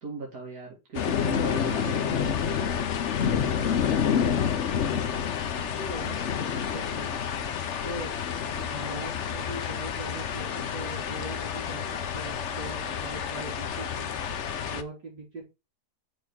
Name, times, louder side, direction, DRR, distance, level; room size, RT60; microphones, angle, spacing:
voice 1, 0.0-2.8, right 4 dB, 60° right, -2 dB, 2.8 m, -38 dB
sound 1, 0.9-14.8, left 7 dB, 55° left, 0.9 m, -29 dB
voice 2, 4.7-7.3 7.8-14.1 14.6-15.4, right 2 dB, 85° right, -2 dB, 4.2 m, -41 dB
6.5 x 3.6 x 6.2 m, 0.26 s
omnidirectional pair, 1.8 m